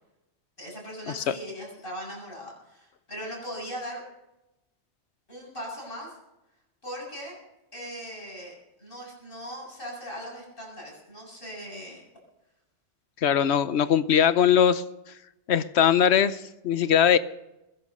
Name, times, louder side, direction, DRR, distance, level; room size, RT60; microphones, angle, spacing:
voice 1, 0.6-4.0 5.3-6.1 6.8-7.4 7.7-12.0, equal, 50° left, -3 dB, 7.7 m, -39 dB
voice 2, 13.2-14.8 15.5-17.2, left 8 dB, 75° left, 14 dB, 1.1 m, -21 dB
21.5 x 11.5 x 5.4 m, 0.93 s
omnidirectional pair, 1.1 m